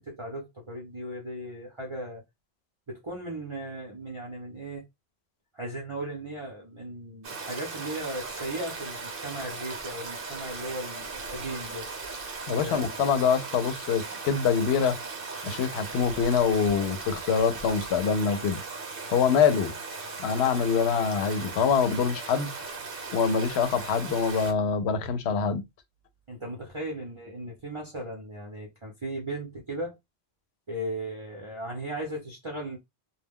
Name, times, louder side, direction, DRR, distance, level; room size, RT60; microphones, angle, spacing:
voice 1, 0.0-2.2 2.9-4.8 5.5-11.9 12.6-12.9 26.3-30.0 30.7-32.8, right 1 dB, 35° right, 0.6 m, -37 dB
Stream, 7.2-24.5, right 4 dB, 60° right, 0.9 m, -38 dB
voice 2, 12.5-15.0 15.4-18.6 19.1-19.7 20.2-22.5 23.1-25.6, left 6 dB, 75° left, 0.8 m, -25 dB
2.2 x 2.2 x 3.5 m
omnidirectional pair, 1.1 m